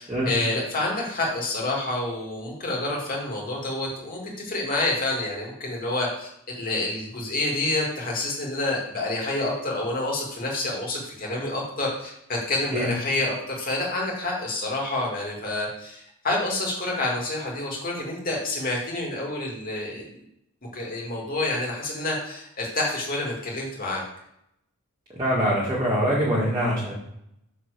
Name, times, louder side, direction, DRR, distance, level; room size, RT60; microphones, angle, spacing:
voice 1, 0.0-20.1 20.7-24.0, left 2 dB, 40° left, -2 dB, 2.6 m, -28 dB
voice 2, 25.2-26.9, equal, 20° right, -7 dB, 1.9 m, -23 dB
6.5 x 4.6 x 6.7 m, 0.78 s
head